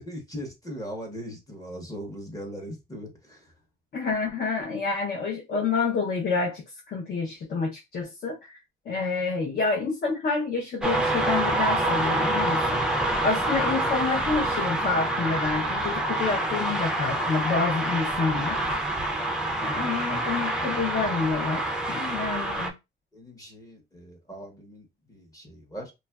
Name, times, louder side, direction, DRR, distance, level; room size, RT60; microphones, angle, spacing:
voice 1, 0.0-3.5 23.1-25.9, equal, 15° left, 0.8 m, -40 dB
voice 2, 3.9-8.5 8.9-18.6 19.6-22.7, left 4 dB, 50° left, 0.6 m, -28 dB
sound 1, 10.8-22.7, right 1 dB, 5° right, 0.4 m, -27 dB
3.0 x 2.4 x 2.2 m
cardioid pair, 160°, 21 cm